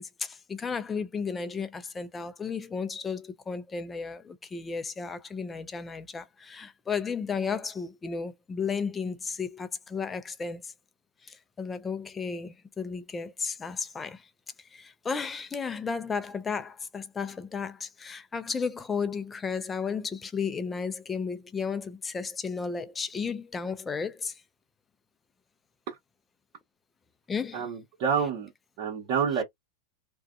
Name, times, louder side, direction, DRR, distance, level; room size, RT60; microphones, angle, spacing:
voice 1, 0.0-10.7 11.2-14.3 14.7-24.4 27.3-27.7, left 5 dB, 15° left, 0.4 m, -34 dB
voice 2, 27.5-28.5 28.8-29.4, right 6 dB, 50° right, 1.0 m, -28 dB
2.5 x 2.2 x 2.4 m
supercardioid pair, 125°, 0 cm